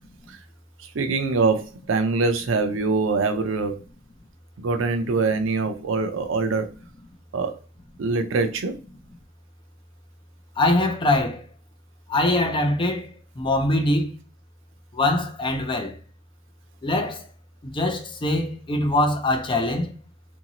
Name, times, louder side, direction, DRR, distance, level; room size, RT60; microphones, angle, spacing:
voice 1, 0.8-3.8 4.6-6.7 7.3-7.6 8.0-8.7, right 4 dB, 70° right, 0.5 m, -24 dB
voice 2, 10.6-11.4 12.1-13.1 13.4-14.1 14.9-15.9 16.8-17.2 17.6-19.9, left 1 dB, 25° left, 0.5 m, -23 dB
2.8 x 2.6 x 2.8 m
head